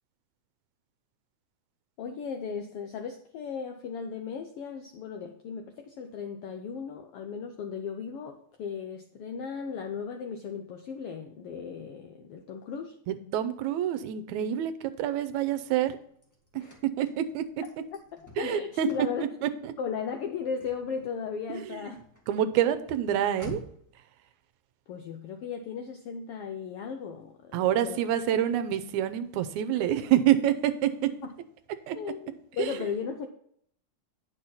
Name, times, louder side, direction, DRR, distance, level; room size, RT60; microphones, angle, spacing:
voice 1, 2.0-13.0 16.5-16.8 18.4-19.3 19.8-22.0 24.9-28.0 31.9-33.3, left 6 dB, 90° left, 4 dB, 1.2 m, -36 dB
voice 2, 13.1-16.0 16.5-16.6 17.0-17.4 18.4-18.9 19.4-19.7 21.5-21.8 22.3-23.6 27.5-31.1 31.9-32.0 32.6-32.8, right 11 dB, 75° right, 11 dB, 2.0 m, -27 dB
Car / Slam, 15.3-24.0, left 1 dB, 15° left, 0.6 m, -50 dB
9.1 x 6.3 x 4.2 m, 0.66 s
omnidirectional pair, 3.5 m